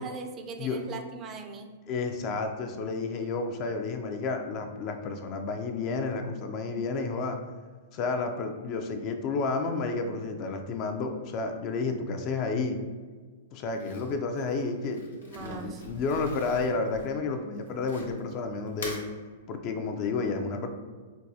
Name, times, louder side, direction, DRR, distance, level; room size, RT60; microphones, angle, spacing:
voice 1, 0.0-1.7 15.2-15.8, right 4 dB, 30° right, 5 dB, 0.4 m, -40 dB
voice 2, 1.9-7.4 7.9-12.8 13.5-15.0 15.4-19.0 19.5-20.7, left 4 dB, 40° left, 5 dB, 0.4 m, -31 dB
Crumpling crinkling, 13.7-18.3 18.7-19.1, left 3 dB, 85° left, 1.0 m, -43 dB
4.5 x 2.3 x 2.6 m, 1.5 s
hypercardioid pair, 120°, 0 cm